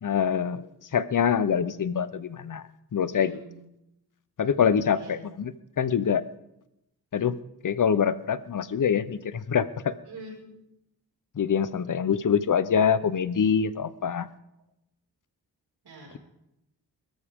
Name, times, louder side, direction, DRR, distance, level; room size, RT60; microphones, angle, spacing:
voice 1, 0.0-0.7 0.9-2.6 2.9-3.4 4.4-5.5 5.8-6.2 7.1-7.4 7.6-9.9 11.4-14.3, left 7 dB, 55° left, 15 dB, 0.8 m, -25 dB
voice 2, 3.1-3.6 4.9-5.2 10.1-10.5 15.8-16.2, right 2 dB, 85° right, -2 dB, 5.4 m, -45 dB
22.5 x 13.5 x 3.6 m, 0.87 s
wide cardioid pair, 110°, 38 cm